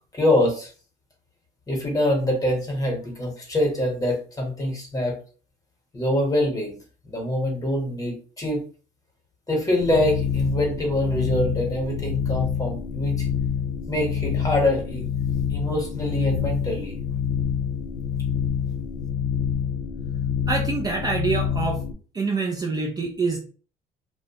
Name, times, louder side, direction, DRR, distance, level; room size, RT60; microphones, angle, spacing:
voice 1, 0.1-0.7 1.7-5.2 5.9-6.8 7.0-8.6 9.5-13.3 13.9-15.1 15.5-16.9, left 1 dB, 20° left, 1 dB, 1.0 m, -24 dB
sound 1, 9.8-21.9, left 7 dB, 60° left, 0.4 m, -27 dB
voice 2, 20.5-21.8 22.1-23.4, right 4 dB, 25° right, 1 dB, 0.4 m, -26 dB
2.5 x 2.1 x 2.7 m, 0.38 s
cardioid pair, 110°, 17 cm